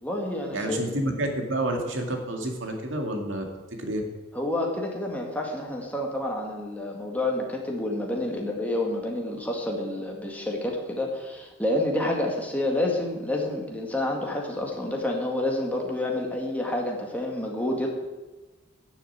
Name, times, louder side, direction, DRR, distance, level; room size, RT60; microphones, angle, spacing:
voice 1, 0.0-1.2 4.3-17.9, left 1 dB, 10° left, 0 dB, 2.0 m, -29 dB
voice 2, 0.5-3.4 3.8-4.0, right 1 dB, 85° right, 3 dB, 2.1 m, -29 dB
11.0 x 7.1 x 8.1 m, 1.2 s
head